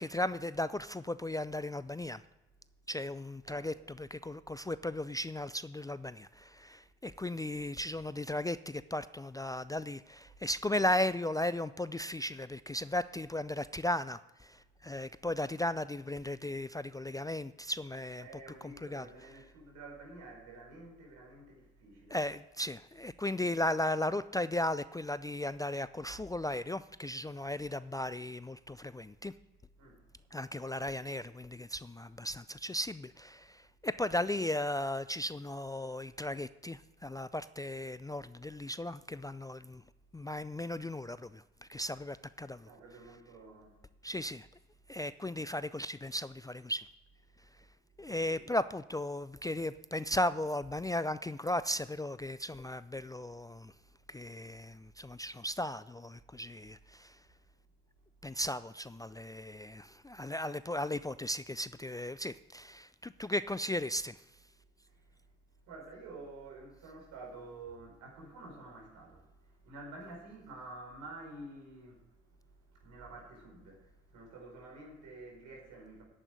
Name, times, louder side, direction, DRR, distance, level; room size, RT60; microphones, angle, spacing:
voice 1, 0.0-2.2 2.9-18.2 18.6-19.1 22.1-29.3 30.3-39.8 40.1-42.7 44.0-44.5 44.9-46.9 48.0-53.7 54.1-57.2 58.2-64.2, left 1 dB, 10° left, 14 dB, 0.4 m, -36 dB
voice 2, 3.4-3.8 18.2-22.2 29.8-30.0 42.6-43.8 48.0-48.5 64.9-65.2 65.6-72.0 72.4-76.0, right 2 dB, 75° right, 0 dB, 4.6 m, -50 dB
8.8 x 8.5 x 9.3 m, 1.0 s
hypercardioid pair, 50°, 31 cm